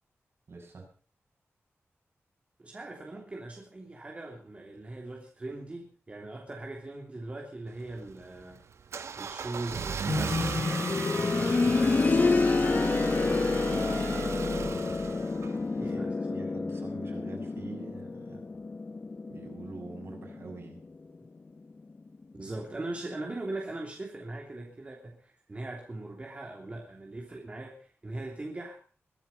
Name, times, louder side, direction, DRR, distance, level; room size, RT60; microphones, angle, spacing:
voice 1, 0.5-0.9 13.0-14.8 15.7-16.0 16.3-18.4 19.3-20.8, right 3 dB, 60° right, 1 dB, 6.8 m, -45 dB
voice 2, 2.6-8.6 9.2-12.4 15.8-16.3 22.3-28.8, right 2 dB, 25° right, 0 dB, 3.1 m, -40 dB
Car / Engine starting, 7.7-15.8, right 6 dB, 75° right, 1.0 m, -37 dB
sound 1, 10.1-20.8 22.2-22.3, left 3 dB, 35° left, 1.0 m, -28 dB
22.5 x 10.0 x 5.6 m, 0.41 s
wide cardioid pair, 155°, 5 cm